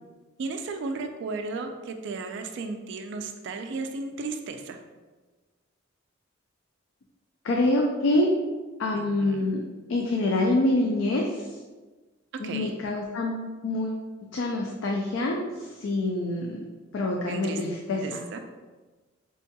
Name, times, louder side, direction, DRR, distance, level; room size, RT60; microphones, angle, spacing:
voice 1, 0.4-4.8 8.9-9.4 12.4-12.7 17.3-17.6 18.0-18.4, right 3 dB, 60° right, 6 dB, 0.3 m, -34 dB
voice 2, 7.4-8.3 8.8-9.6 9.9-11.6 12.4-14.1 14.3-16.6 16.9-18.2, left 2 dB, 65° left, 0 dB, 0.4 m, -26 dB
4.5 x 2.7 x 2.2 m, 1.3 s
head